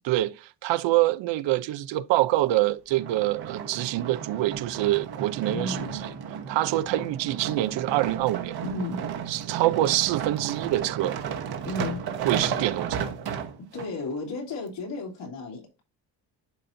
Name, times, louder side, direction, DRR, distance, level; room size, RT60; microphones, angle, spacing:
voice 1, 0.1-5.8 6.5-8.5 9.3-11.1 12.2-13.1, right 15 dB, 85° right, 0.6 m, -25 dB
sound 1, 2.9-13.9 14.5-14.6, right 7 dB, 60° right, 1.1 m, -34 dB
voice 2, 5.5-6.0 8.6-9.0 11.7-12.0 13.7-15.8, left 2 dB, 80° left, 3.1 m, -33 dB
11.5 x 4.3 x 2.6 m
cardioid pair, 150°, 43 cm